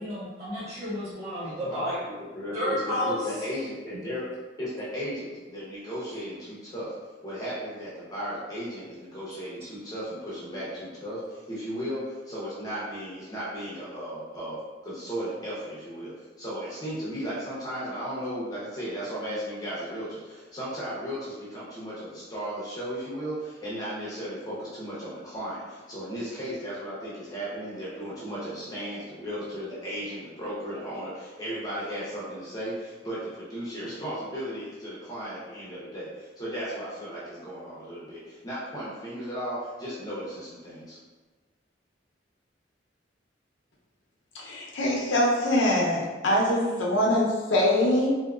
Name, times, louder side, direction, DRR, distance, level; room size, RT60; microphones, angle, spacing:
voice 1, 0.0-2.0 2.5-3.3 3.9-4.0, left 1 dB, 35° right, -16 dB, 1.3 m, -31 dB
voice 2, 1.4-1.8 2.3-4.2 4.6-6.9 7.2-41.0, equal, 20° left, -8 dB, 0.8 m, -35 dB
voice 3, 44.3-48.1, left 1 dB, 85° left, -3 dB, 0.7 m, -23 dB
3.5 x 2.7 x 2.4 m, 1.3 s
head